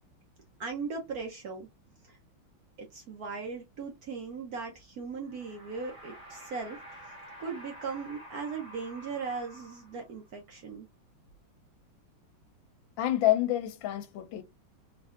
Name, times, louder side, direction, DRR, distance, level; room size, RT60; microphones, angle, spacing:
voice 1, 0.6-1.7 2.0-2.2 2.8-7.0 7.4-10.9, right 5 dB, 65° right, 0.9 m, -38 dB
sound 1, 5.2-10.3, equal, 35° right, 1.3 m, -49 dB
voice 2, 13.0-14.4, left 14 dB, 75° left, 1.2 m, -27 dB
3.5 x 3.0 x 2.4 m
omnidirectional pair, 2.2 m